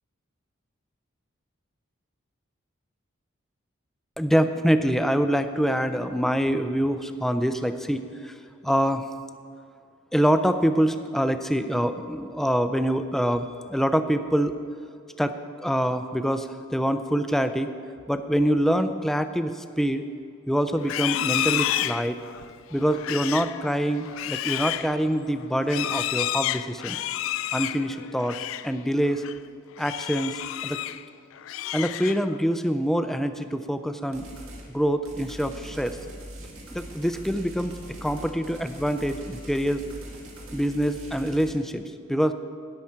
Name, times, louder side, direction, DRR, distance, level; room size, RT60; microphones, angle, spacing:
voice 1, 4.2-8.4 8.6-9.0 10.1-14.5 15.2-17.7 18.1-20.0 20.5-22.2 22.7-27.0 27.5-28.4 28.6-29.2 29.8-30.8 31.7-34.2 34.7-36.0 36.7-37.7 38.0-39.8 40.5-41.8 42.1-42.3, equal, ahead, 9 dB, 0.3 m, -25 dB
Livestock farm animals working animals, 20.8-28.7 29.1-29.4 29.8-31.0 31.4-32.4, left 13 dB, 80° left, 0.3 m, -30 dB
sound 1, 34.1-34.7 35.0-41.5, right 1 dB, 90° right, 2.1 m, -42 dB
13.0 x 9.8 x 4.5 m, 2.3 s
head